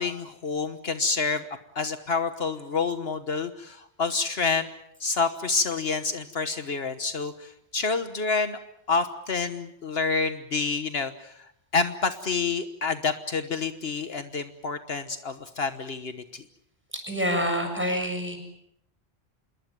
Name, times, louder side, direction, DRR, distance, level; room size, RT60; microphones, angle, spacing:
voice 1, 0.0-1.5 1.7-4.7 5.0-8.6 8.9-11.3 11.7-16.4, left 4 dB, 65° left, 9 dB, 1.4 m, -28 dB
voice 2, 16.9-18.4, equal, 10° right, 4 dB, 7.1 m, -27 dB
27.0 x 21.5 x 7.5 m, 0.74 s
omnidirectional pair, 1.1 m